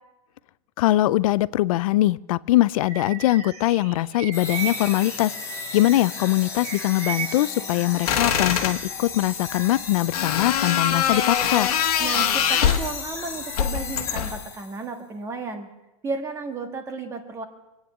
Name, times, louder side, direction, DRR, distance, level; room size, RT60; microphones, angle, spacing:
voice 1, 0.8-5.3 5.7-11.7, left 16 dB, 65° left, 0.5 m, -22 dB
Bird vocalization bird call bird song, 2.8-6.1 6.6-8.8, right 7 dB, 85° right, 2.3 m, -36 dB
sound 1, 4.3-14.9, left 5 dB, 15° left, 2.0 m, -35 dB
sound 2, 8.1-8.8 10.1-12.9 13.6-14.4, left 9 dB, 85° left, 1.7 m, -23 dB
voice 2, 12.0-15.7 16.0-17.4, right 4 dB, 15° right, 1.5 m, -33 dB
24.0 x 9.4 x 6.1 m
supercardioid pair, 160°, 19 cm